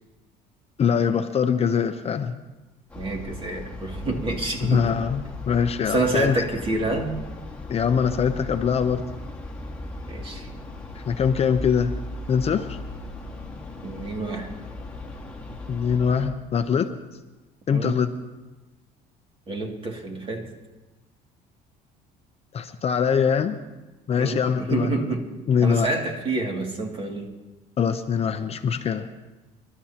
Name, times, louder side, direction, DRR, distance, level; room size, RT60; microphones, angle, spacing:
voice 1, 0.8-2.4 4.6-6.4 7.7-9.0 11.1-11.9 12.3-12.8 15.7-16.9 17.7-18.1 22.5-23.6 24.1-24.9 25.5-25.9 27.8-29.1, left 7 dB, 35° left, 8 dB, 0.7 m, -23 dB
sound 1, 2.9-16.3, left 2 dB, 5° left, 1.9 m, -37 dB
voice 2, 2.9-4.9 5.8-7.1 10.1-10.5 13.8-14.5 17.7-18.0 19.5-20.5 24.2-25.3 25.6-27.3, right 2 dB, 30° right, 1 dB, 2.5 m, -28 dB
27.5 x 12.5 x 2.9 m, 1.1 s
cardioid pair, 115°, 17 cm